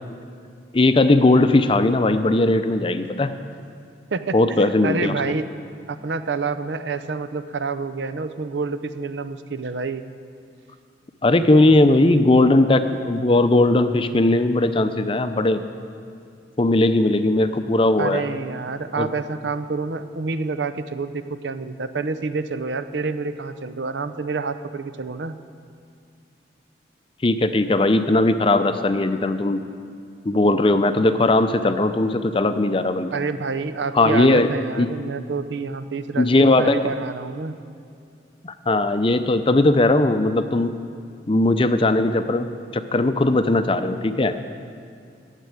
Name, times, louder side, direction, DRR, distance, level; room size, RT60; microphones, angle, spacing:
voice 1, 0.7-3.3 4.3-5.1 11.2-15.6 16.6-18.2 19.0-19.1 27.2-29.6 30.3-33.1 33.9-34.5 34.8-34.9 36.2-36.8 38.4-40.7 41.3-42.5 42.7-44.3, left 2 dB, 30° left, 10 dB, 0.5 m, -18 dB
voice 2, 4.1-5.5 5.9-10.1 18.0-25.4 33.1-37.6, right 4 dB, 75° right, 11 dB, 0.6 m, -28 dB
12.5 x 8.3 x 9.0 m, 2.3 s
head